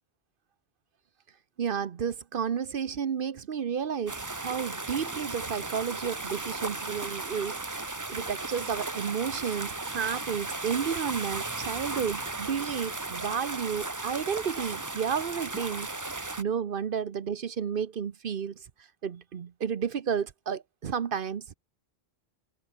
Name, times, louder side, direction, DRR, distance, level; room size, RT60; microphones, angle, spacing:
voice 1, 1.6-15.9 16.4-18.6 19.0-21.5, right 7 dB, 60° right, 1.0 m, -32 dB
sound 1, 4.1-16.4, right 2 dB, 20° right, 0.9 m, -35 dB
omnidirectional pair, 1.1 m